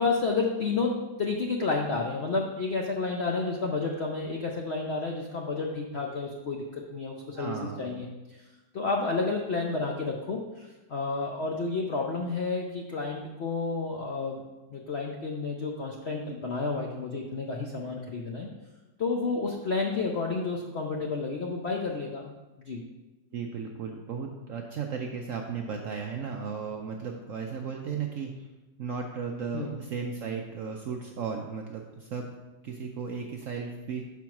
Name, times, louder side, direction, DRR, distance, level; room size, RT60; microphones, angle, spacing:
voice 1, 0.0-8.4 8.7-14.4 14.7-18.5 19.0-22.3 22.7-22.8 29.5-29.8, left 4 dB, 65° left, 0 dB, 0.6 m, -31 dB
voice 2, 7.3-7.9 23.3-28.5 28.8-32.3 32.6-34.1, right 6 dB, 70° right, 2 dB, 0.7 m, -35 dB
6.0 x 4.6 x 5.8 m, 1.1 s
omnidirectional pair, 2.0 m